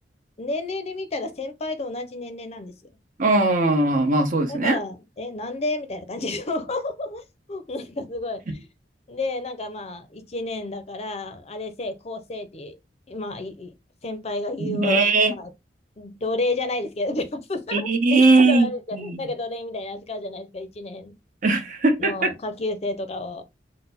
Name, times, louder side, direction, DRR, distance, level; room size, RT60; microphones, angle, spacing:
voice 1, 0.4-2.7 4.5-8.7 9.1-12.8 13.1-13.7 14.0-15.0 15.3-15.5 16.0-21.2 22.0-23.5, left 2 dB, 35° left, 0.6 m, -31 dB
voice 2, 3.2-4.8 14.6-15.3 17.7-18.7 18.9-19.2 21.4-22.3, right 2 dB, 50° right, 0.9 m, -19 dB
4.0 x 2.1 x 4.0 m
head